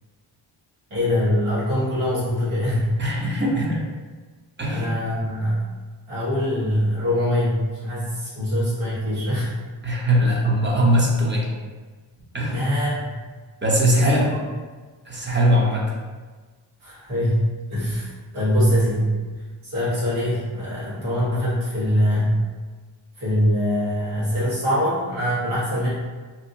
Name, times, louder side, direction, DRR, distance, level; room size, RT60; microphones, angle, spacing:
voice 1, 0.9-2.9 4.7-5.6 6.1-9.5 10.2-10.3 12.5-13.1 14.0-14.3 16.8-19.1 19.6-22.3 23.2-25.9, equal, 85° right, -10 dB, 1.5 m, -23 dB
voice 2, 3.0-3.8 4.6-4.9 9.8-11.5 12.3-12.7 13.6-14.2 15.1-15.8, equal, 25° right, -3 dB, 0.8 m, -20 dB
2.8 x 2.5 x 2.7 m, 1.4 s
cardioid pair, 55°, 49 cm